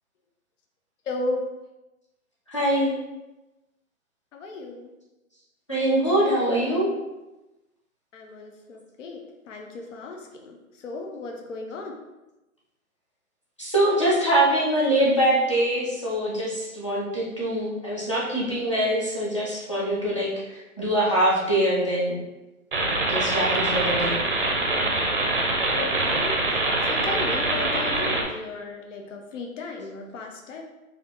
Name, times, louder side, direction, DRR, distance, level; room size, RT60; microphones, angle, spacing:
voice 1, 1.1-1.4 4.3-4.9 8.1-12.0 23.8-24.0 25.7-26.4 26.9-30.6, left 3 dB, 60° left, 2 dB, 0.6 m, -35 dB
voice 2, 2.5-3.0 5.7-6.9 13.6-22.2 23.1-24.2, right 1 dB, 20° left, -7 dB, 0.5 m, -23 dB
sound 1, 22.7-28.2, right 2 dB, 40° right, 0.6 m, -24 dB
3.8 x 2.7 x 3.4 m, 1.0 s
hypercardioid pair, 175°, 42 cm